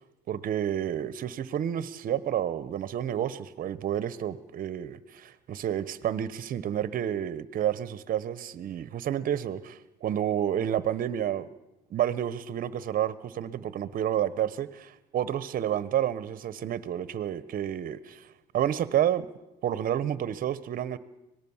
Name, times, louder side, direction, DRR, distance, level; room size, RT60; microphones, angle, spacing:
voice 1, 0.3-11.5 11.9-19.3 19.6-21.0, right 10 dB, 55° right, 1.1 m, -30 dB
25.0 x 19.0 x 7.3 m
cardioid pair, 110°, 17 cm